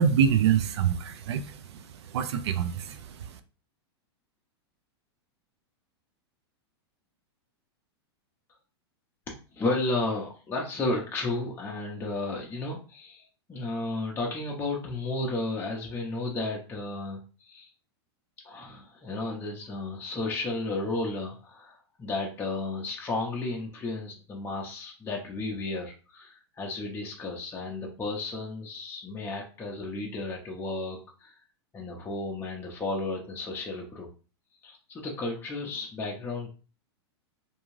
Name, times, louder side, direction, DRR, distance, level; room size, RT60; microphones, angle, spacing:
voice 1, 0.0-3.4, right 8 dB, 75° right, 0.4 m, -26 dB
voice 2, 9.3-17.7 18.4-31.3 31.7-34.1 34.6-36.5, left 2 dB, 15° left, 0.5 m, -33 dB
2.6 x 2.3 x 3.1 m
hypercardioid pair, 130°, 14 cm